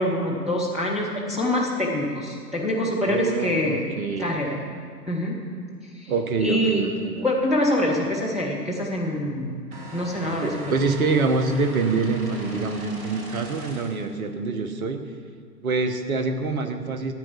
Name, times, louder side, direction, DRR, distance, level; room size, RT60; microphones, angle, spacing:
voice 1, 0.0-3.9 4.2-4.6 5.1-5.4 5.9-6.1 6.4-6.8 7.2-9.6 9.9-10.7, left 1 dB, ahead, -6 dB, 0.4 m, -25 dB
voice 2, 3.0-4.3 6.1-7.2 10.4-15.0 15.6-17.1, right 4 dB, 55° right, 7 dB, 1.4 m, -25 dB
sound 1, 9.7-14.1, right 2 dB, 30° right, 2.3 m, -41 dB
12.5 x 9.1 x 5.7 m, 2.1 s
figure-of-eight pair, 115°, 49 cm